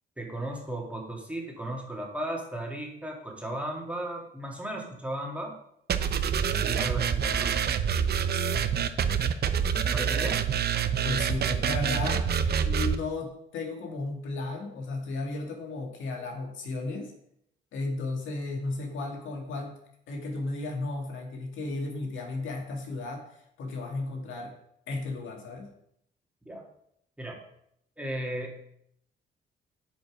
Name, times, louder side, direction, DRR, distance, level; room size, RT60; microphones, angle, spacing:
voice 1, 0.2-5.6 6.6-7.6 9.9-10.4 11.4-11.5 26.5-26.7 27.2-27.4 28.0-28.6, right 1 dB, 5° right, -1 dB, 2.3 m, -35 dB
sound 1, 5.9-12.9, right 7 dB, 55° right, 0.7 m, -26 dB
voice 2, 11.0-12.3 12.6-17.1 17.7-19.7 20.1-23.2 23.6-24.5 24.9-25.7, left 2 dB, 75° left, 0 dB, 2.1 m, -34 dB
9.0 x 5.3 x 5.0 m, 0.74 s
cardioid pair, 90°, 20 cm